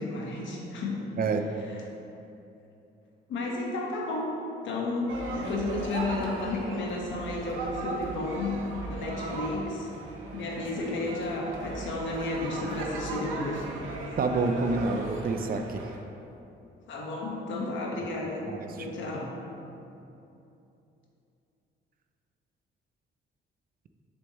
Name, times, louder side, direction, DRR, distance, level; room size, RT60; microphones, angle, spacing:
voice 1, 0.0-1.0 3.3-4.3 4.6-8.6 8.9-9.9 10.3-13.7 16.9-18.5 18.8-19.4, left 2 dB, 70° left, -2 dB, 1.4 m, -32 dB
sound 1, 5.1-16.0, right 2 dB, 85° right, 0.9 m, -38 dB
voice 2, 14.2-15.8 18.5-18.7, right 3 dB, 45° right, 6 dB, 0.5 m, -28 dB
7.1 x 6.5 x 3.1 m, 2.8 s
cardioid pair, 90°, 20 cm